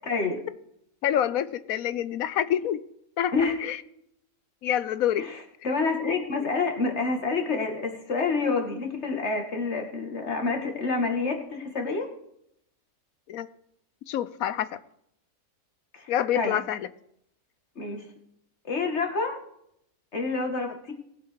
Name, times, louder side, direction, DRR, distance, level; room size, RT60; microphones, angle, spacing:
voice 1, 0.1-0.4 3.3-3.6 5.2-12.1 15.9-16.6 17.8-18.0 18.6-19.4 20.1-20.9, left 4 dB, 50° left, 2.5 m, -28 dB
voice 2, 1.0-2.8 3.2-3.3 3.6-3.8 4.6-5.3 13.3-13.5 14.1-14.8 16.1-16.9, left 10 dB, 75° left, 1.2 m, -27 dB
19.5 x 7.5 x 4.7 m
omnidirectional pair, 1.5 m